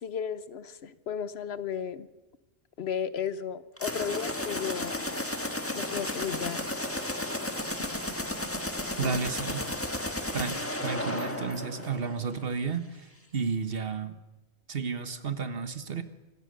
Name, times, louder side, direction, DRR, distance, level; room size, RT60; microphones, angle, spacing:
voice 1, 0.0-2.1 2.8-5.0 5.7-6.7 9.0-9.2, left 7 dB, 70° left, 14 dB, 1.1 m, -34 dB
sound 1, 3.8-12.4, left 1 dB, 15° left, 1.4 m, -33 dB
voice 2, 9.0-9.7 10.3-13.1 13.3-14.2 14.7-16.0, right 5 dB, 60° right, 10 dB, 1.5 m, -32 dB
25.5 x 15.5 x 6.7 m, 1.1 s
omnidirectional pair, 1.1 m